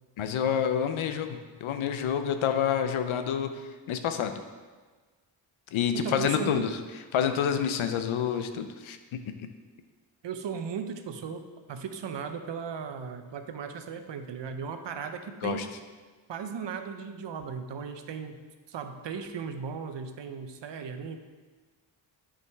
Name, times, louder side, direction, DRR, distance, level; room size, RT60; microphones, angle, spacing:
voice 1, 0.2-3.5 3.9-4.3 5.7-6.7 7.1-9.0 9.4-9.5 15.4-15.6, left 8 dB, 85° left, 8 dB, 0.7 m, -28 dB
voice 2, 5.9-6.7 10.2-11.4 11.7-15.7 16.3-18.4 18.7-21.2, right 6 dB, 65° right, 7 dB, 0.7 m, -36 dB
8.0 x 5.0 x 3.5 m, 1.4 s
cardioid pair, 65°, 47 cm